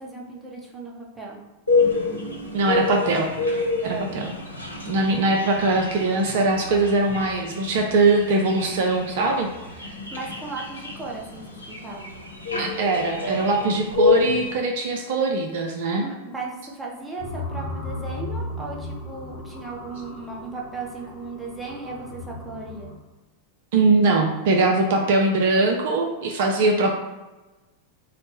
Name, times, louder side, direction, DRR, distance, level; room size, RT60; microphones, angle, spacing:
voice 1, 0.0-1.4 3.8-4.2 10.1-12.1 16.0-22.9, right 3 dB, 5° right, -4 dB, 0.8 m, -36 dB
sound 1, 1.7-14.5, left 4 dB, 85° left, 0.5 m, -27 dB
voice 2, 2.5-3.3 3.8-4.3 4.9-9.5 12.6-16.0 23.7-26.9, right 3 dB, 55° right, 2 dB, 0.4 m, -21 dB
sound 2, 17.2-23.0, left 2 dB, 50° left, 0.8 m, -36 dB
4.0 x 2.0 x 3.3 m, 1.1 s
figure-of-eight pair, 90°, 0 cm